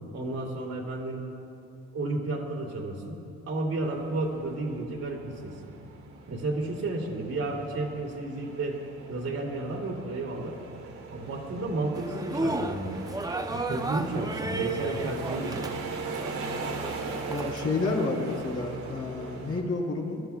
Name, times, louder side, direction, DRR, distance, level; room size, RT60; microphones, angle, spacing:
voice 1, 0.1-1.2 1.9-3.2 3.5-5.5 6.3-8.8 9.1-10.5 11.1-13.0 13.5-15.7, right 2 dB, 55° right, -2 dB, 2.6 m, -32 dB
sound 1, 3.8-19.6, right 4 dB, 80° right, 2.0 m, -40 dB
sound 2, 11.9-17.6, right 2 dB, 10° right, 0.6 m, -34 dB
voice 2, 17.3-20.2, left 3 dB, 55° left, -3 dB, 3.4 m, -30 dB
25.0 x 13.0 x 2.3 m, 2.7 s
cardioid pair, 90°, 30 cm